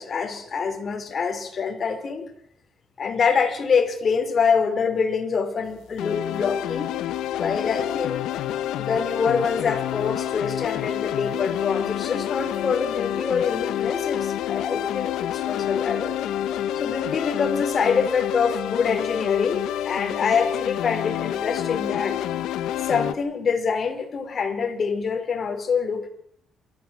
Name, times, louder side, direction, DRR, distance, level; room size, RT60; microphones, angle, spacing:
voice 1, 0.0-2.2 3.0-6.9 7.4-8.3 8.8-16.2 16.7-22.2 22.8-26.1, left 5 dB, 45° left, 6 dB, 4.8 m, -25 dB
sound 1, 6.0-23.1, left 11 dB, 85° left, 1.3 m, -28 dB
28.0 x 14.0 x 7.6 m, 0.68 s
cardioid pair, 90°, 0 cm